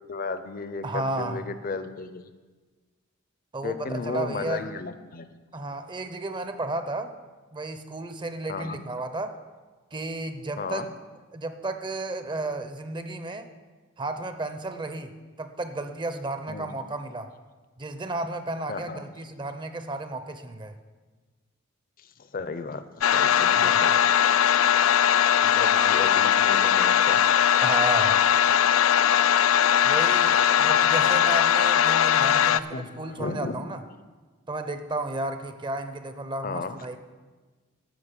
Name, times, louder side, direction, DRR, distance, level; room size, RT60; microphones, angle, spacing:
voice 1, 0.0-2.3 3.6-5.3 8.5-8.8 10.6-10.9 16.5-16.7 18.7-19.0 22.0-22.8 23.1-23.9 25.4-27.2 32.4-33.6 36.4-37.0, left 4 dB, 45° left, 11 dB, 0.7 m, -34 dB
voice 2, 0.8-1.4 3.5-4.7 5.5-7.2 7.5-9.3 9.9-10.9 11.3-13.5 14.0-17.3 17.8-20.8 23.6-23.9 27.6-28.3 29.8-33.8 34.5-37.0, right 2 dB, 25° right, 9 dB, 0.6 m, -33 dB
sound 1, 23.0-32.6, left 9 dB, 80° left, 0.3 m, -20 dB
12.5 x 5.5 x 8.2 m, 1.3 s
head